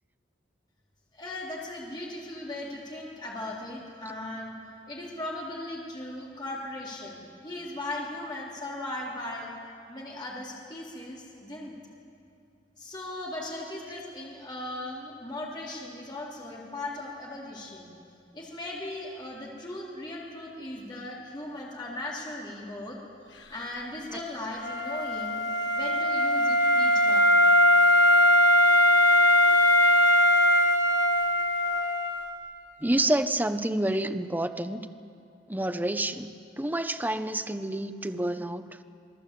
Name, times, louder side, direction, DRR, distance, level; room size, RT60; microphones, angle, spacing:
voice 1, 1.1-4.5 4.9-9.5 9.9-11.7 12.8-17.9 18.3-23.0 23.5-25.4 25.7-27.4, left 1 dB, 25° left, -4 dB, 3.9 m, -38 dB
Wind instrument woodwind instrument, 24.6-32.4, equal, 90° left, 1.6 m, -21 dB
voice 2, 32.8-34.8 35.5-36.3 36.6-38.7, right 1 dB, 10° right, 8 dB, 0.8 m, -28 dB
26.5 x 19.0 x 8.5 m, 2.6 s
head